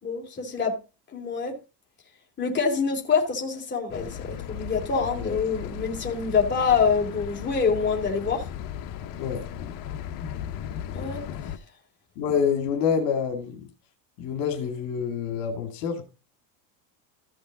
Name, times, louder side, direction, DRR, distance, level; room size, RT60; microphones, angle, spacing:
voice 1, 0.0-0.7 1.1-1.6 2.4-8.4 10.9-11.2, left 5 dB, 20° left, 3.5 m, -25 dB
sound 1, 3.9-11.6, left 10 dB, 45° left, 1.1 m, -36 dB
voice 2, 12.2-13.7 14.2-16.0, left 7 dB, 65° left, 2.4 m, -27 dB
14.5 x 6.6 x 3.7 m
supercardioid pair, 125°, 48 cm